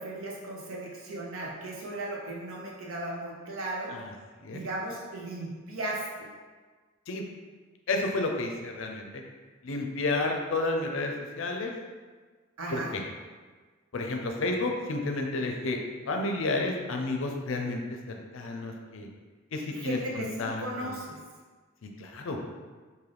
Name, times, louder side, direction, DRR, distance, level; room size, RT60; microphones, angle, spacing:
voice 1, 0.0-4.0 4.5-6.3 12.6-12.9 19.7-21.2, right 1 dB, 85° right, -3 dB, 0.8 m, -36 dB
voice 2, 7.9-9.2 9.6-11.7 12.7-13.0 13.9-15.8 16.1-17.8 18.1-19.1 19.5-20.9 22.0-22.4, left 2 dB, 65° left, 2 dB, 0.5 m, -31 dB
3.8 x 2.6 x 3.3 m, 1.4 s
head